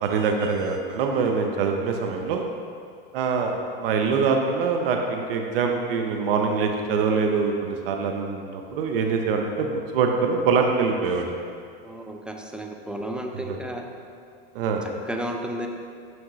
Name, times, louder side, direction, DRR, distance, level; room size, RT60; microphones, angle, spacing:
voice 1, 0.0-2.5 3.1-11.3 13.5-13.6 14.5-14.9, right 5 dB, 70° right, 3 dB, 0.7 m, -24 dB
voice 2, 11.8-13.8 15.1-15.7, right 1 dB, 5° right, 2 dB, 0.4 m, -32 dB
6.3 x 5.9 x 3.1 m, 2.3 s
hypercardioid pair, 105°, 30 cm